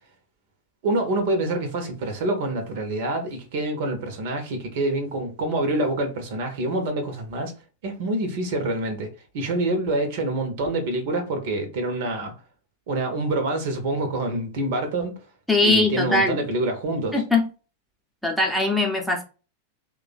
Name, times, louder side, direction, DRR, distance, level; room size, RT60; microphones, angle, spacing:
voice 1, 0.8-7.5 7.8-12.3 12.9-15.2 15.6-17.2, right 2 dB, 50° right, 0.9 m, -26 dB
voice 2, 15.5-16.4 17.1-17.5 18.2-19.2, left 3 dB, ahead, 0.8 m, -21 dB
3.1 x 2.4 x 3.9 m
figure-of-eight pair, 90°, 0 cm